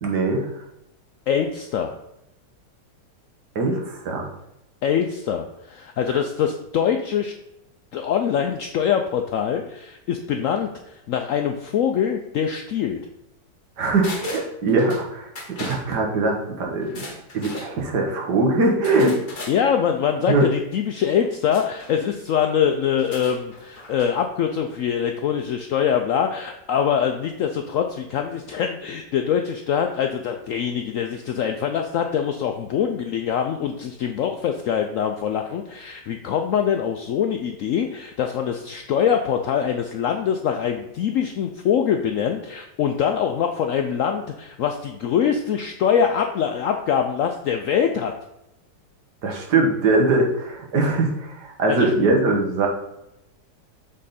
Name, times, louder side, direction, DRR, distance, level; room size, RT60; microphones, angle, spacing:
voice 1, 0.0-0.5 3.6-4.3 6.1-6.2 13.8-17.0 17.3-19.2 20.3-20.5 49.2-52.7, right 3 dB, 70° right, 0 dB, 1.8 m, -21 dB
voice 2, 1.3-2.0 4.8-7.3 7.9-13.0 19.5-48.1 51.7-51.9, left 8 dB, 75° left, 4 dB, 0.7 m, -23 dB
sound 1, 14.0-15.0 15.3-15.8 16.8-17.7 18.8-19.6 21.5-21.9 22.9-24.1 24.4-24.5, left 2 dB, 35° left, 1.1 m, -37 dB
7.5 x 3.7 x 4.1 m, 0.86 s
omnidirectional pair, 1.8 m